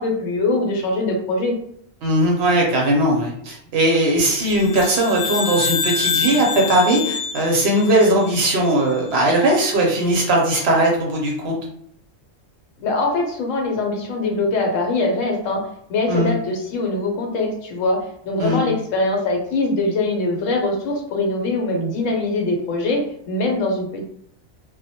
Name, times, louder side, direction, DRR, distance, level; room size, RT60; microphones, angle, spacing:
voice 1, 0.0-1.5 12.8-24.0, left 2 dB, 80° left, 1 dB, 1.0 m, -22 dB
voice 2, 2.0-11.5 16.1-16.3 18.4-18.6, right 1 dB, 65° right, -1 dB, 0.7 m, -18 dB
sound 1, 4.3-8.9, left 6 dB, 55° left, 0.8 m, -27 dB
2.2 x 2.1 x 2.7 m, 0.66 s
omnidirectional pair, 1.3 m